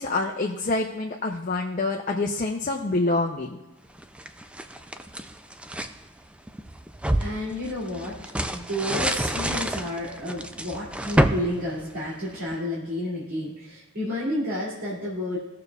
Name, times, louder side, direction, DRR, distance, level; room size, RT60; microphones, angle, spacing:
voice 1, 0.0-3.6, left 2 dB, 40° left, 1 dB, 0.6 m, -26 dB
sound 1, 4.0-6.0 6.5-12.5, right 1 dB, 5° right, 0.3 m, -28 dB
voice 2, 7.2-8.2 8.5-15.4, left 1 dB, 85° right, -8 dB, 2.5 m, -31 dB
18.0 x 6.7 x 2.4 m, 1.1 s
head